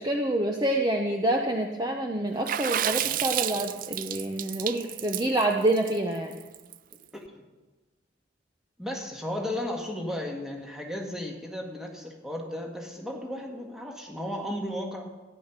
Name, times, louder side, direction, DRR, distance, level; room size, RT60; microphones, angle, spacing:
voice 1, 0.0-6.4, right 1 dB, 20° right, 2 dB, 0.8 m, -27 dB
Water / Splash splatter, 2.5-6.9, right 11 dB, 45° right, 0.4 m, -30 dB
voice 2, 7.1-7.4 8.8-15.1, left 1 dB, ahead, 0 dB, 1.8 m, -34 dB
14.0 x 10.5 x 5.9 m, 1.2 s
head